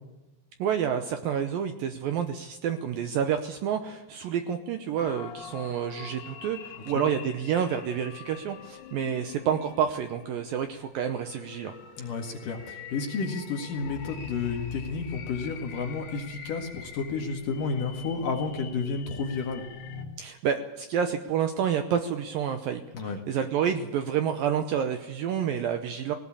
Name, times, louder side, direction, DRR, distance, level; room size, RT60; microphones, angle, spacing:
voice 1, 0.6-11.7 20.2-26.1, right 8 dB, 85° right, 7 dB, 2.0 m, -29 dB
sound 1, 5.0-20.1, left 7 dB, 85° left, 5.0 m, -45 dB
voice 2, 12.0-19.6 22.9-23.2, left 4 dB, 55° left, 2 dB, 2.9 m, -31 dB
18.5 x 18.5 x 8.7 m, 1.1 s
omnidirectional pair, 5.4 m